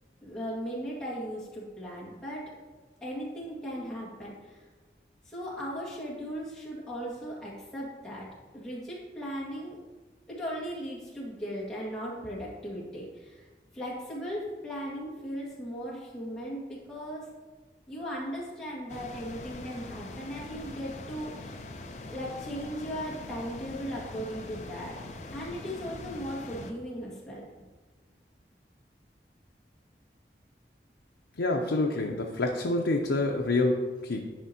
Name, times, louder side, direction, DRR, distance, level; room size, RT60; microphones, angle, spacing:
voice 1, 0.2-2.4 3.0-4.6 5.3-8.3 8.5-9.8 10.3-13.4 13.7-17.3 17.9-21.6 22.1-24.9 25.3-27.5, equal, 5° left, -7 dB, 1.8 m, -37 dB
sound 1, 18.9-26.7, left 2 dB, 40° left, 0.5 m, -42 dB
voice 2, 31.4-34.3, left 2 dB, 90° left, 1 dB, 0.6 m, -27 dB
11.0 x 4.9 x 2.8 m, 1.3 s
head